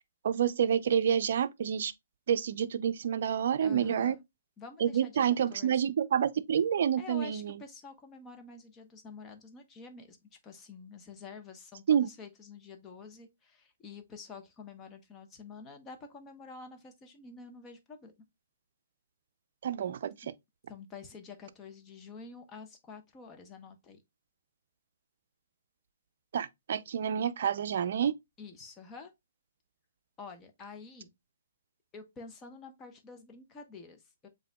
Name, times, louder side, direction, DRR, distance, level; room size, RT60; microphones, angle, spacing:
voice 1, 0.2-1.9 2.3-4.1 4.8-7.5 11.9-12.1 19.6-20.3 26.3-28.1, right 8 dB, 60° right, 0.5 m, -28 dB
voice 2, 3.6-4.2 4.6-5.8 7.0-10.2 10.4-18.1 20.7-24.0 28.4-29.1 30.2-31.1 31.9-34.3, left 4 dB, 20° left, 1.1 m, -48 dB
7.6 x 2.7 x 2.2 m
hypercardioid pair, 135°, 0 cm